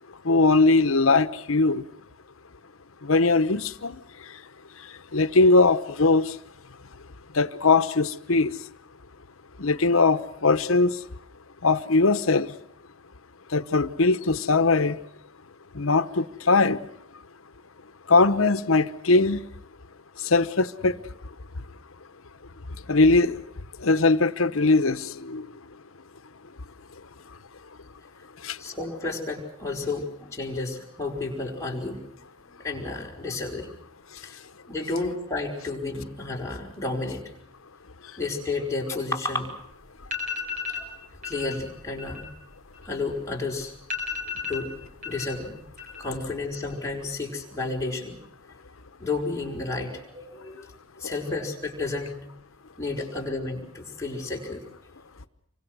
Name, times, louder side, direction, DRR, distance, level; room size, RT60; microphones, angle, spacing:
voice 1, 0.2-1.8 3.0-3.9 5.1-6.3 7.3-8.5 9.6-11.0 11.6-12.5 13.5-15.0 15.7-16.8 18.1-19.4 20.2-21.0 22.9-23.4 23.8-25.5 28.4-28.6 51.0-51.1, left 3 dB, 85° left, 1.0 m, -20 dB
voice 2, 28.6-32.0 32.6-33.7 34.2-34.4 34.7-37.2 38.2-39.5 40.7-40.9 41.2-42.2 42.9-43.7 44.5-44.7 45.0-45.6 46.0-48.2 49.0-50.7 51.0-52.1 52.8-54.6, left 3 dB, 15° left, 5.1 m, -31 dB
sound 1, 39.6-39.7 40.0-40.9 41.2-41.5 41.9-43.3 43.6-43.7 43.9-45.3 45.6-46.2 46.5-47.1, left 5 dB, 40° right, 5.3 m, -34 dB
27.5 x 25.0 x 6.2 m
head